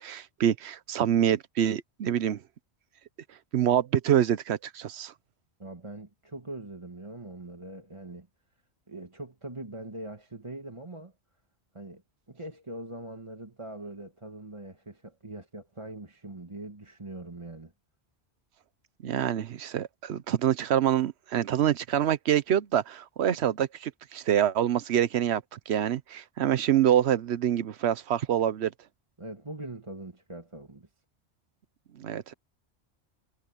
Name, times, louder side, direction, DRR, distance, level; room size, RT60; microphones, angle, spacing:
voice 1, 0.0-2.4 3.5-5.1 19.0-28.7 32.0-32.3, right 10 dB, 75° right, 1.0 m, -26 dB
voice 2, 5.6-8.3 8.9-11.1 11.7-12.0 12.3-17.7 29.2-30.9, right 2 dB, 25° right, 1.7 m, -42 dB
omnidirectional pair, 1.1 m